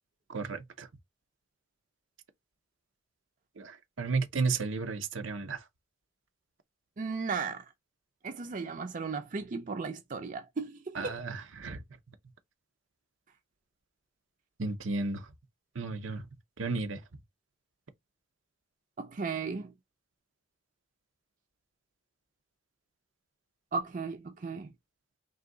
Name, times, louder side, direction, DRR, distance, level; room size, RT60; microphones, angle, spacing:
voice 1, 0.3-0.9 3.6-5.6 10.9-11.8 14.6-15.3 15.7-16.2 16.6-17.0, right 4 dB, 85° right, 0.7 m, -33 dB
voice 2, 7.0-7.6 8.2-11.2 19.0-19.7 23.7-24.7, right 4 dB, 40° right, 0.5 m, -35 dB
3.9 x 2.8 x 3.7 m
head